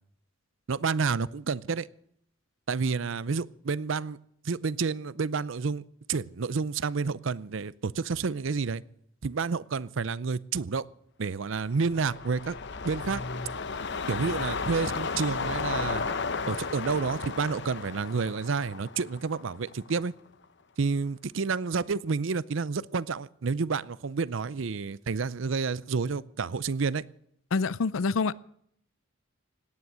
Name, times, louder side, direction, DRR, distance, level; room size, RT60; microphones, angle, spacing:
voice 1, 0.7-1.9 2.7-4.2 4.4-5.8 6.1-8.8 9.2-10.9 11.2-12.6 12.8-13.2 14.1-16.0 16.5-20.1 20.8-27.0, right 5 dB, 65° right, 0.5 m, -29 dB
sound 1, 11.6-20.1 20.4-20.5, left 4 dB, 55° left, 0.9 m, -34 dB
voice 2, 27.5-28.3, left 4 dB, 75° left, 0.5 m, -26 dB
17.5 x 9.9 x 7.6 m
head